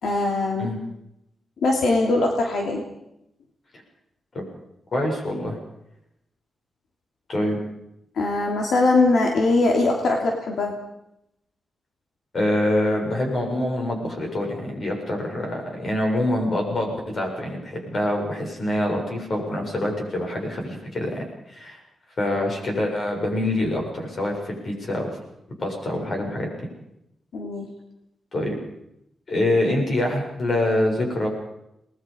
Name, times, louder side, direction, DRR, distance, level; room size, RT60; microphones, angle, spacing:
voice 1, 0.0-0.7 1.6-2.8 8.2-10.7 27.3-27.7, left 2 dB, 80° left, 1 dB, 2.8 m, -21 dB
voice 2, 4.9-5.6 7.3-7.6 12.3-21.2 21.5-21.8 22.2-25.1 25.6-26.5 28.3-28.6 29.3-31.3, left 1 dB, 40° left, 1 dB, 7.1 m, -25 dB
28.0 x 20.5 x 5.2 m, 0.82 s
wide cardioid pair, 145°, 0 cm